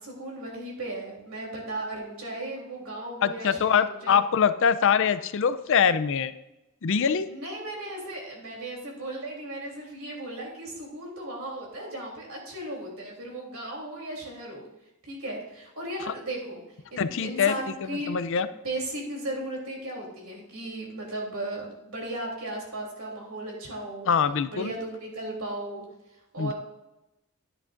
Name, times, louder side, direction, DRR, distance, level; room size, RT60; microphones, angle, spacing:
voice 1, 0.0-4.1 7.3-14.6 15.1-16.6 16.9-18.1 18.5-24.1 24.5-25.8 26.3-26.5, right 1 dB, 75° right, -1 dB, 3.3 m, -36 dB
voice 2, 3.2-6.3 6.8-7.3 17.0-17.5 17.8-18.5 24.1-24.7 26.4-26.5, left 7 dB, 60° left, 13 dB, 0.5 m, -23 dB
10.5 x 10.0 x 2.5 m, 0.94 s
head